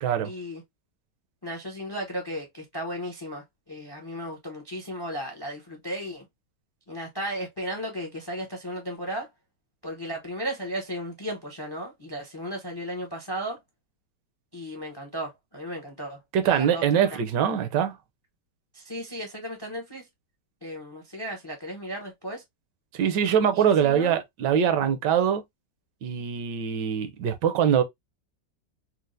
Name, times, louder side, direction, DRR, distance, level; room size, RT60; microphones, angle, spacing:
voice 1, 0.2-0.6 1.4-6.2 6.9-9.3 9.8-13.6 14.5-16.8 17.1-17.2 18.7-20.1 20.6-22.4 23.5-24.2, equal, 35° left, 0.4 m, -35 dB
voice 2, 16.3-17.9 22.9-25.4 26.0-27.8, right 8 dB, 75° right, 1.3 m, -23 dB
4.4 x 2.1 x 2.5 m
omnidirectional pair, 1.9 m